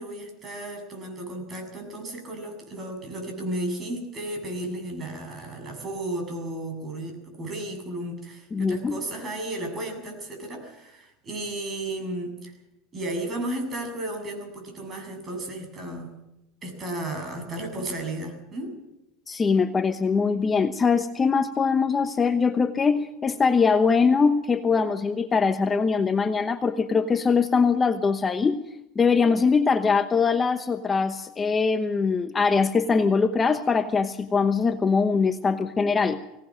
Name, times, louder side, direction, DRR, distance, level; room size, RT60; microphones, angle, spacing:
voice 1, 0.0-12.5 12.9-16.1 16.6-18.7, right 1 dB, 30° right, 5 dB, 7.5 m, -34 dB
voice 2, 8.5-9.0 19.3-28.6 28.9-36.2, left 5 dB, 20° left, 9 dB, 0.9 m, -22 dB
24.0 x 18.0 x 6.3 m, 0.89 s
supercardioid pair, 130°, 0 cm